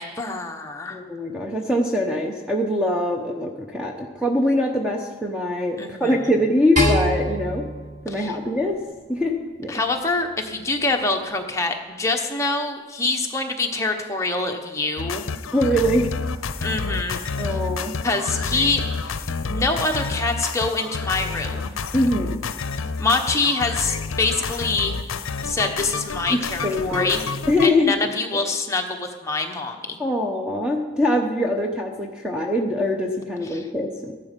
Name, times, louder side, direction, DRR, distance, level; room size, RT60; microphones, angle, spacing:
voice 1, 0.0-1.0 5.8-6.1 8.1-8.4 9.7-15.2 16.6-17.2 17.5-17.6 18.0-21.7 23.0-24.9 25.4-27.2 27.6-30.0 33.5-33.7, left 3 dB, 15° left, 2 dB, 1.1 m, -25 dB
voice 2, 0.9-7.7 8.0-8.8 9.1-9.3 9.6-9.7 15.5-16.1 17.4-18.0 21.9-22.4 26.3-27.1 27.5-28.0 30.0-34.1, left 1 dB, 5° right, 0 dB, 0.8 m, -23 dB
sound 1, 6.8-9.1, equal, 40° right, 4.6 m, -25 dB
sound 2, 15.0-27.7, left 4 dB, 75° left, 0.6 m, -29 dB
14.5 x 11.5 x 5.3 m, 1.4 s
head